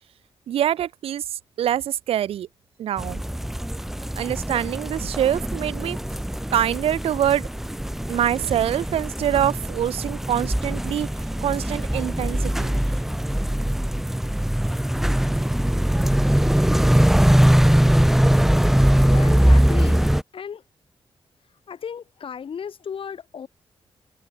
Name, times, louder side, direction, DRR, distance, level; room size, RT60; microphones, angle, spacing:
voice 1, 0.5-2.5 2.8-3.2 4.2-6.0 6.5-7.5 8.1-11.1 11.4-12.8, right 11 dB, 80° right, 0.4 m, -25 dB
sound 1, 3.0-20.2, equal, 5° right, 0.4 m, -21 dB
voice 2, 19.0-20.7 21.4-23.5, left 7 dB, 65° left, 2.6 m, -35 dB
cardioid pair, 80°, 10 cm